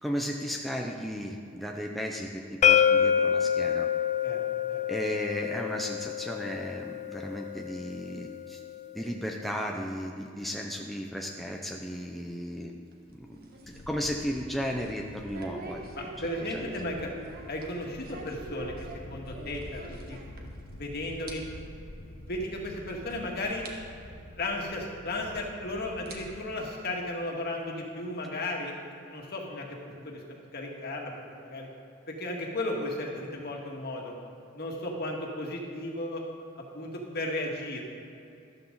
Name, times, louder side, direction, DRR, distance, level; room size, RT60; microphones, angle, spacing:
voice 1, 0.0-3.9 4.9-8.6 8.9-12.7 13.1-16.6, equal, ahead, 0 dB, 0.6 m, -35 dB
sound 1, 2.6-8.4, left 8 dB, 35° left, 0.3 m, -27 dB
sound 2, 12.8-20.8 21.0-21.3 21.7-21.8 22.5-22.6 23.1-23.2 23.6-23.7 25.1-25.2 25.9-27.3, right 3 dB, 45° right, 1.5 m, -46 dB
sound 3, 13.6-26.6, left 1 dB, 75° left, 1.0 m, -47 dB
voice 2, 16.0-17.1 17.5-18.7 19.1-20.2 20.7-21.4 22.3-23.6 24.4-28.7 29.1-31.7 32.1-34.1 34.5-36.2 36.6-37.8, left 1 dB, 50° left, 0 dB, 1.9 m, -35 dB
13.0 x 13.0 x 3.9 m, 2.7 s
head